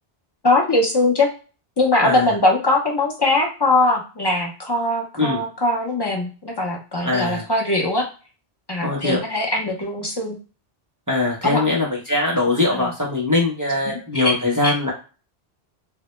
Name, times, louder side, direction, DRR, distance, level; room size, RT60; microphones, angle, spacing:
voice 1, 0.4-1.3 1.8-8.1 8.7-10.4 11.4-11.6 12.7-12.9 14.1-14.3 14.6-14.7, left 2 dB, 35° left, -1 dB, 0.4 m, -21 dB
voice 2, 7.0-7.4 8.8-9.2 11.1-14.9, left 2 dB, 25° right, -4 dB, 0.5 m, -21 dB
2.1 x 2.0 x 3.0 m, 0.35 s
omnidirectional pair, 1.1 m